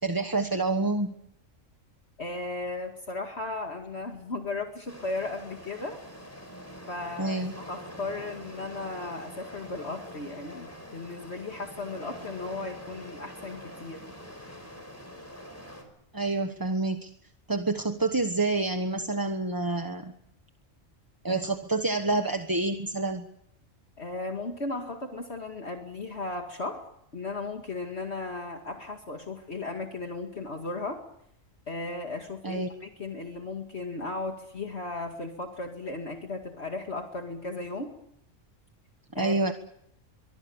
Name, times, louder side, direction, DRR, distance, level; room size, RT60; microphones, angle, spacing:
voice 1, 0.0-1.1 7.2-7.5 16.1-17.1 17.5-20.1 21.2-23.3 32.4-32.7 39.1-39.5, right 2 dB, 15° right, 7 dB, 1.2 m, -28 dB
voice 2, 2.2-6.0 6.9-14.0 21.3-21.4 24.0-26.8 27.1-31.0 31.7-37.9 39.1-39.5, left 3 dB, 55° left, 3 dB, 2.4 m, -36 dB
sound 1, 4.9-15.8, equal, 10° left, 5.2 m, -44 dB
24.0 x 24.0 x 7.1 m, 0.75 s
omnidirectional pair, 1.3 m